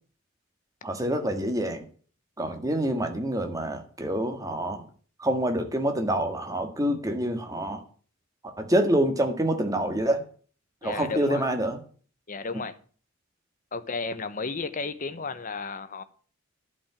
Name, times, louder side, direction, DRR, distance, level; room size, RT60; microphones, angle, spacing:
voice 1, 0.8-1.8 2.4-4.8 5.2-7.8 8.6-10.2 10.8-11.8, right 1 dB, 15° right, 1.8 m, -26 dB
voice 2, 10.8-11.4 12.3-12.8 13.7-16.0, left 4 dB, 40° left, 1.0 m, -33 dB
12.0 x 5.3 x 8.8 m
head